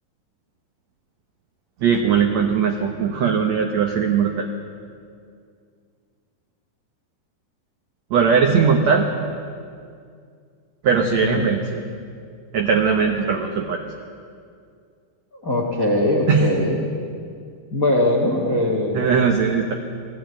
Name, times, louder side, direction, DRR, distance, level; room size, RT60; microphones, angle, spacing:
voice 1, 1.8-4.5 8.1-9.1 10.8-11.8 12.5-13.8 16.3-16.5 18.9-19.7, right 6 dB, 75° right, 4 dB, 1.6 m, -19 dB
voice 2, 11.0-11.5 15.3-16.9 17.7-19.0, left 1 dB, 50° left, 0 dB, 1.0 m, -21 dB
19.0 x 15.0 x 9.2 m, 2.3 s
omnidirectional pair, 4.6 m